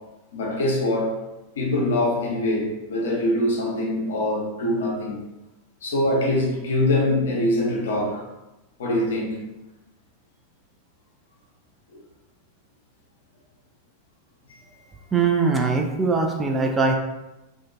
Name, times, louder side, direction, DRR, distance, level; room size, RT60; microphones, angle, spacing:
voice 1, 0.3-1.2 1.6-5.3 5.8-8.2 8.8-9.5 14.5-14.6, left 1 dB, 60° left, -2 dB, 0.6 m, -23 dB
voice 2, 15.1-16.9, right 4 dB, 15° right, 1 dB, 0.3 m, -21 dB
2.4 x 2.1 x 2.4 m, 0.98 s
figure-of-eight pair, 90°, 0 cm